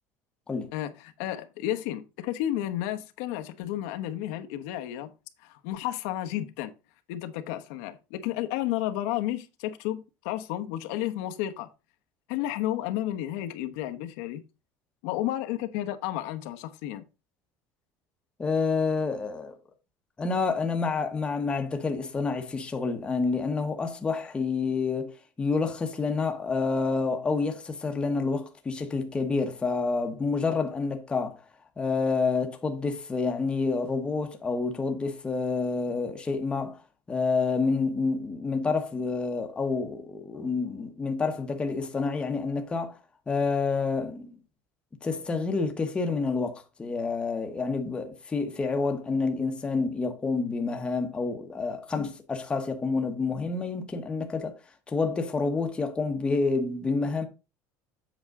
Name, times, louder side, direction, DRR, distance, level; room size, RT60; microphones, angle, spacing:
voice 1, 0.7-5.1 5.4-6.7 7.1-11.7 12.3-14.4 15.0-17.0, left 13 dB, 80° left, 1.1 m, -32 dB
voice 2, 18.4-19.6 20.2-31.4 31.8-36.8 37.1-43.0 43.3-44.3 45.0-54.6 54.9-57.2, left 4 dB, 15° left, 1.0 m, -28 dB
8.0 x 6.0 x 3.6 m
cardioid pair, 175°, 8 cm